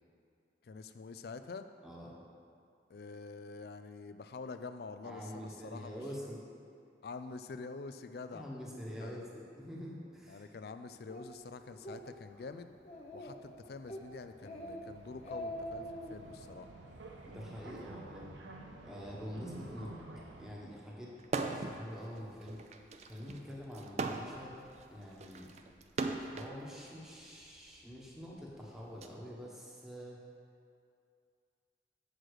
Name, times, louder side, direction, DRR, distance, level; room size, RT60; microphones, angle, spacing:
voice 1, 0.6-1.7 2.9-6.0 7.0-8.5 9.0-9.2 10.3-12.7 13.1-16.7, left 4 dB, 55° left, 10 dB, 0.4 m, -46 dB
voice 2, 1.8-2.2 5.0-6.4 8.3-10.4 17.3-18.3 18.8-19.9 20.4-21.1 21.4-22.6 23.0-24.6 24.9-25.5 26.3-30.2, equal, ahead, -5 dB, 1.1 m, -46 dB
Speech, 11.1-11.3 11.7-12.0 12.4-12.5 12.9-13.5 13.9-14.1 14.4-14.8 15.1-16.2, equal, 35° left, 0.8 m, -43 dB
sound 1, 12.3-20.5, right 2 dB, 90° right, 0.7 m, -52 dB
sound 2, 21.2-21.8 22.2-26.5 27.4-29.1, right 3 dB, 40° right, 0.4 m, -38 dB
7.6 x 6.5 x 4.8 m, 2.5 s
head